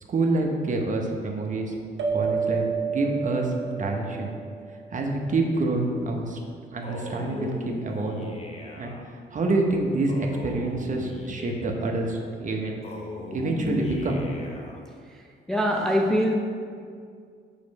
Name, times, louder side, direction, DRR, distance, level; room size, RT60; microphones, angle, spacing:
voice 1, 0.1-1.7 2.1-4.3 4.9-6.4 6.7-8.3 8.8-8.9 9.3-12.8 13.3-14.2 14.5-14.6, right 2 dB, 40° right, 1 dB, 0.9 m, -27 dB
sound 1, 2.0-5.0, right 6 dB, 75° right, 0.8 m, -30 dB
Male speech man speaking, 6.8-9.0 10.1-11.9 12.8-14.8, left 2 dB, 30° left, 0.8 m, -38 dB
voice 2, 15.5-16.3, equal, ahead, 1 dB, 0.4 m, -23 dB
6.8 x 3.2 x 5.2 m, 2.2 s
cardioid pair, 90°, 20 cm